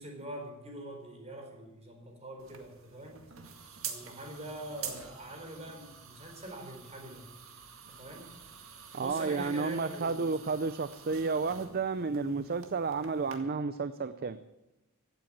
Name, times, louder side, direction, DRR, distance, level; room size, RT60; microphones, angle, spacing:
voice 1, 0.0-3.2 3.8-7.3 7.9-8.3 8.9-10.4, right 1 dB, 30° right, 2 dB, 4.4 m, -44 dB
sound 1, 2.4-13.4, right 7 dB, 70° right, 2.0 m, -47 dB
voice 2, 8.9-14.4, right 4 dB, 45° right, 12 dB, 0.6 m, -31 dB
16.0 x 9.2 x 8.7 m, 0.97 s
head